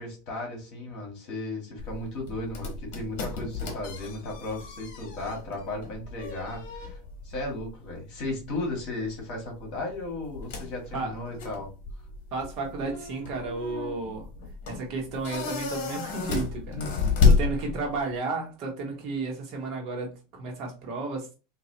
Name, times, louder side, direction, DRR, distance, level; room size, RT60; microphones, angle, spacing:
voice 1, 0.0-11.7 16.7-17.1, left 2 dB, 45° left, 2.0 m, -35 dB
sound 1, 1.8-18.2, left 4 dB, 60° left, 1.1 m, -31 dB
voice 2, 12.3-14.3 14.7-16.8 17.2-21.3, right 3 dB, 40° right, 1.2 m, -33 dB
3.9 x 2.9 x 2.9 m
supercardioid pair, 170°, 0 cm